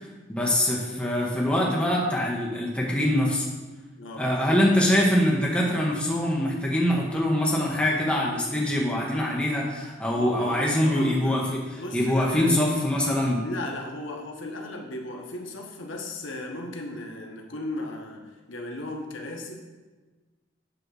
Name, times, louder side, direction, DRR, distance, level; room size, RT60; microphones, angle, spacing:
voice 1, 0.3-3.4 4.2-11.6 11.9-13.4, left 1 dB, 5° left, -4 dB, 1.2 m, -24 dB
voice 2, 4.0-4.3 10.1-11.4 11.8-12.7 13.4-19.5, left 1 dB, 80° left, 1 dB, 1.1 m, -36 dB
8.0 x 3.4 x 6.4 m, 1.2 s
head